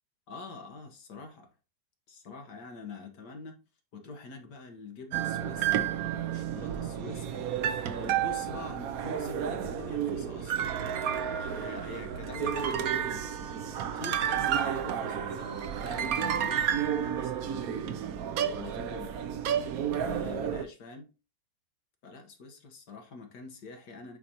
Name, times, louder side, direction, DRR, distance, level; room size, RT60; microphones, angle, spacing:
voice 1, 0.3-1.5 2.1-3.6 3.9-5.9 6.3-7.5 8.0-11.3 11.5-18.0 18.5-19.2 20.0-21.1 22.0-24.2, left 3 dB, 60° left, 1.8 m, -45 dB
sound 1, 5.1-20.7, right 9 dB, 65° right, 0.9 m, -31 dB
8.7 x 4.2 x 2.9 m
omnidirectional pair, 2.0 m